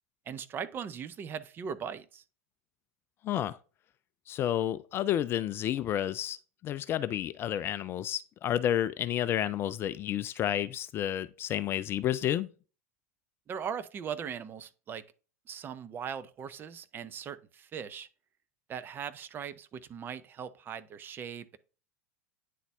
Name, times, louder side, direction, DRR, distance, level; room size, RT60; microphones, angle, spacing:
voice 1, 0.3-2.2 13.5-15.0 15.5-18.1 18.7-21.6, right 7 dB, 25° right, 0.6 m, -39 dB
voice 2, 3.2-3.6 4.3-6.4 6.6-12.5, left 11 dB, 30° left, 0.3 m, -30 dB
9.2 x 4.0 x 3.4 m
figure-of-eight pair, 85°, 8 cm